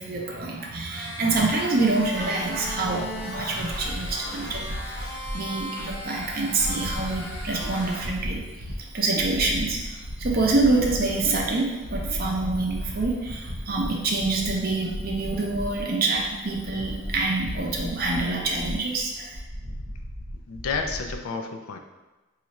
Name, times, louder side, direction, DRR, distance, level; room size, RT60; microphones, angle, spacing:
voice 1, 0.0-8.4 8.9-19.3, right 3 dB, 40° right, -1 dB, 0.5 m, -26 dB
sound 1, 0.9-8.0, left 1 dB, 50° left, 0.9 m, -37 dB
sound 2, 1.3-21.1, equal, 80° right, 0.8 m, -36 dB
voice 2, 20.3-21.8, left 4 dB, 75° left, 5 dB, 0.4 m, -31 dB
3.0 x 2.4 x 4.1 m, 1.1 s
head